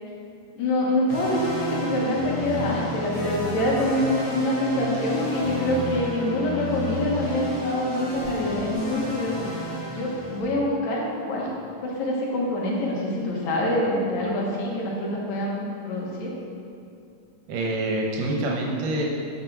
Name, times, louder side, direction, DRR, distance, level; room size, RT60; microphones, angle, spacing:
voice 1, 0.6-9.3 9.9-11.5 11.8-16.3, left 1 dB, 65° left, -3 dB, 2.3 m, -26 dB
sound 1, 1.1-10.4, left 1 dB, 35° left, 2.4 m, -30 dB
voice 2, 17.5-19.0, right 1 dB, 80° right, -1 dB, 2.5 m, -26 dB
7.5 x 5.7 x 5.9 m, 2.5 s
omnidirectional pair, 3.8 m